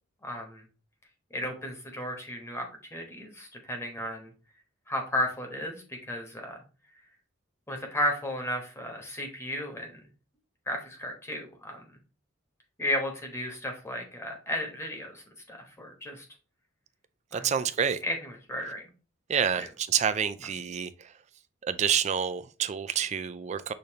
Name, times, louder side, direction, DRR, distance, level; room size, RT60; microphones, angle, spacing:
voice 1, 0.2-0.6 1.3-2.6 2.9-4.3 4.9-6.6 7.7-10.0 10.7-11.8 12.8-15.2 15.5-16.2 17.3-17.5 18.0-18.8, left 1 dB, 15° left, 1.0 m, -34 dB
voice 2, 17.3-18.0 19.3-21.1 21.6-23.7, right 8 dB, 35° right, 0.3 m, -28 dB
6.5 x 2.6 x 2.8 m
head